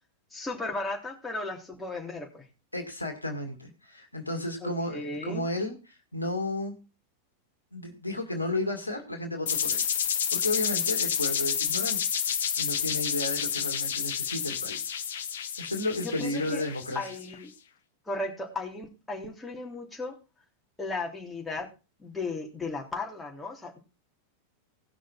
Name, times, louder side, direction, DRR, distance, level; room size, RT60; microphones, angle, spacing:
voice 1, 0.3-2.5 4.6-5.5 16.0-16.6 16.9-17.5 18.1-20.2 20.8-21.7 22.0-23.8, left 3 dB, 10° left, -1 dB, 3.4 m, -35 dB
voice 2, 2.7-6.8 7.7-9.8 10.3-12.0 12.3-14.9 15.6-17.1, left 1 dB, 85° left, 5 dB, 2.0 m, -33 dB
sound 1, 9.5-17.2, left 8 dB, 60° left, 0.9 m, -30 dB
18.0 x 6.1 x 4.4 m, 0.31 s
figure-of-eight pair, 90°, 0 cm